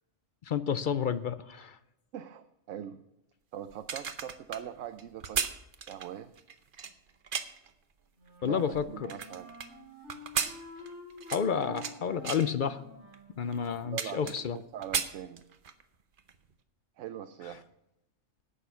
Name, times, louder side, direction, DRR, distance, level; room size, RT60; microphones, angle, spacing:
voice 1, 0.5-1.8 8.4-8.8 11.3-12.8 13.4-14.6, left 7 dB, 55° left, 13 dB, 0.6 m, -30 dB
voice 2, 2.1-3.0 3.5-5.5 5.9-6.3 8.4-9.5 13.8-15.4 17.0-17.6, right 10 dB, 80° right, 10 dB, 1.0 m, -42 dB
sound 1, 3.7-7.7 8.3-9.7 10.1-12.0 12.2-12.5 13.1-13.2 13.5-14.6 14.8-15.8 16.2-16.4, right 6 dB, 50° right, 0.9 m, -35 dB
Wind instrument woodwind instrument, 8.1-13.8, left 1 dB, 65° right, 6.0 m, -49 dB
11.0 x 8.5 x 5.6 m, 0.86 s
omnidirectional pair, 1.3 m